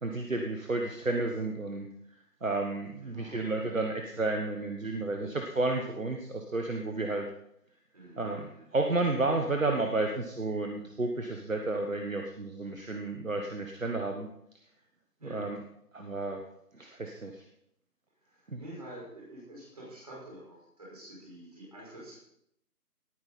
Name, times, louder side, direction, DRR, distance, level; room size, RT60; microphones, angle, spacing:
voice 1, 0.0-1.9 2.4-7.3 8.2-14.3 15.2-15.6 15.9-16.4 16.7-17.4 18.5-18.6, right 2 dB, 55° right, 3 dB, 1.4 m, -32 dB
voice 2, 3.0-3.5 7.9-8.8 15.2-15.5 18.2-22.2, right 1 dB, 25° right, -5 dB, 5.3 m, -48 dB
19.0 x 9.2 x 4.3 m, 0.74 s
figure-of-eight pair, 180°, 48 cm